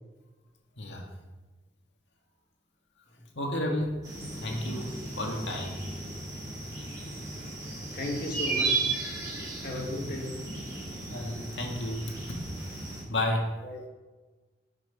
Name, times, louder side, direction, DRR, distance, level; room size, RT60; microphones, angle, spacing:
voice 1, 0.8-1.1 3.3-4.1 4.4-5.8 7.7-7.8 9.6-9.7 11.1-12.7 13.1-13.6, left 1 dB, 85° left, 1 dB, 2.0 m, -32 dB
sound 1, 4.0-13.0, right 3 dB, 20° right, 3.8 m, -35 dB
voice 2, 7.9-8.9 9.6-10.4 13.6-13.9, left 1 dB, 55° left, 0 dB, 2.1 m, -35 dB
11.0 x 6.1 x 5.6 m, 1.2 s
head